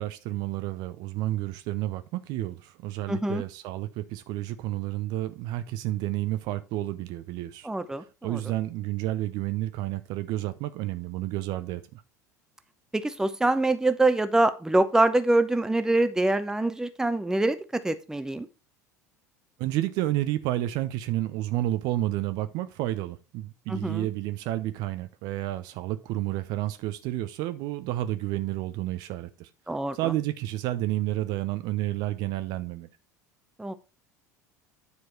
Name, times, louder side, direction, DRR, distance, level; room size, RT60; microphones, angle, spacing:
voice 1, 0.0-7.7 8.2-12.0 19.6-29.5 29.9-32.9, right 15 dB, 50° right, 0.6 m, -30 dB
voice 2, 3.1-3.4 7.6-8.4 12.9-18.5 23.7-24.1 29.7-30.1 33.6-33.7, right 2 dB, 5° right, 0.8 m, -25 dB
9.6 x 4.7 x 4.5 m
figure-of-eight pair, 70°, 9 cm